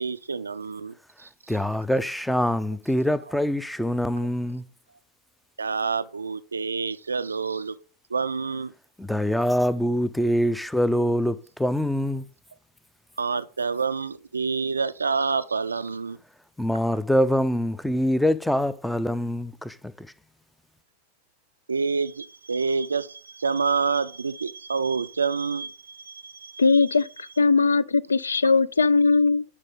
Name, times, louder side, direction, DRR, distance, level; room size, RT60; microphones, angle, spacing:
voice 1, 0.0-1.6 5.6-7.7 8.1-8.7 13.2-16.2 21.7-26.6, right 5 dB, 75° right, 0.3 m, -28 dB
voice 2, 1.5-4.6 9.0-12.2 16.6-20.1, equal, ahead, 0.4 m, -24 dB
voice 3, 26.6-29.4, left 4 dB, 75° left, 0.3 m, -20 dB
9.9 x 4.0 x 5.2 m
figure-of-eight pair, 90°, 0 cm